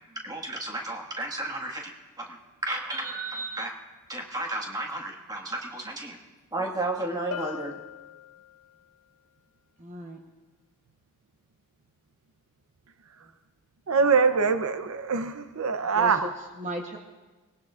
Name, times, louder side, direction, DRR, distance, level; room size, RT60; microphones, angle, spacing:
voice 1, 0.2-1.9 2.2-3.7 4.1-6.2 6.5-7.8, right 2 dB, 15° right, 1 dB, 1.6 m, -33 dB
Bell, 7.3-8.9, left 9 dB, 80° left, 0.6 m, -40 dB
voice 2, 9.8-10.2 13.2-13.3 15.8-17.0, equal, 35° right, 2 dB, 1.0 m, -37 dB
voice 3, 13.9-16.2, right 5 dB, 70° right, 8 dB, 0.6 m, -23 dB
24.0 x 19.0 x 2.4 m, 1.2 s
head